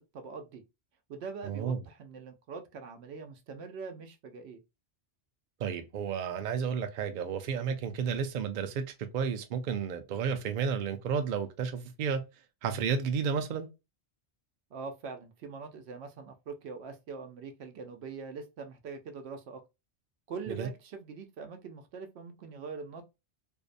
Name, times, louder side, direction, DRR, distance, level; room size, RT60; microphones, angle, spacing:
voice 1, 0.1-0.6 1.1-4.6 14.7-19.6 20.3-23.0, right 4 dB, 80° right, 0.9 m, -43 dB
voice 2, 1.4-1.8 5.6-8.8 9.1-12.2 12.6-13.7 20.5-20.7, right 6 dB, 60° right, 0.5 m, -32 dB
2.6 x 2.1 x 2.4 m
omnidirectional pair, 1.1 m